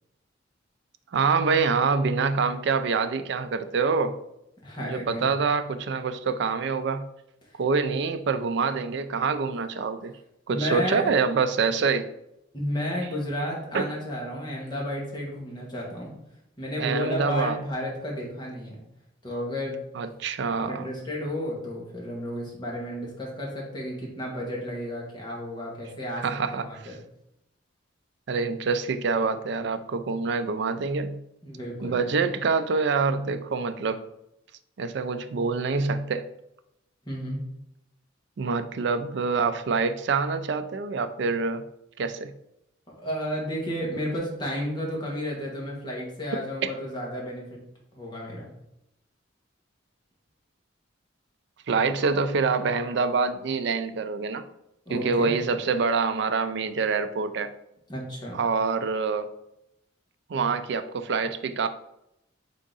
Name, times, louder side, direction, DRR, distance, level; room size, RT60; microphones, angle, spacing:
voice 1, 1.1-4.2 4.8-7.1 7.6-10.1 10.5-12.1 13.7-13.9 16.8-17.6 20.0-20.8 26.2-26.6 28.3-31.2 31.8-34.0 34.8-36.3 38.4-41.6 42.0-42.3 46.6-46.7 51.7-54.4 54.9-57.5 58.3-59.3 60.3-61.7, right 4 dB, 60° right, 9 dB, 0.4 m, -26 dB
voice 2, 4.6-5.4 7.4-7.6 10.5-11.1 12.5-16.1 16.6-18.8 19.2-19.8 20.6-26.2 26.5-27.0 31.4-32.1 37.0-37.4 43.0-47.6 47.9-48.5 54.9-55.3 57.9-58.4, equal, 20° left, -3 dB, 1.3 m, -32 dB
3.7 x 3.7 x 3.9 m, 0.83 s
head